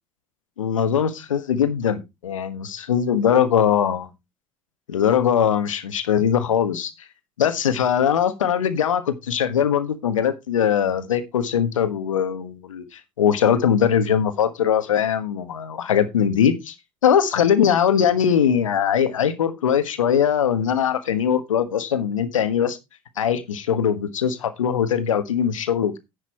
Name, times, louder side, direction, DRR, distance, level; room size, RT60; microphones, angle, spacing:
voice 1, 0.6-4.1 4.9-6.9 7.4-16.7 17.0-22.8 23.2-26.0, left 8 dB, 85° left, 1.3 m, -21 dB
10.5 x 6.6 x 4.4 m
hypercardioid pair, 65°, 16 cm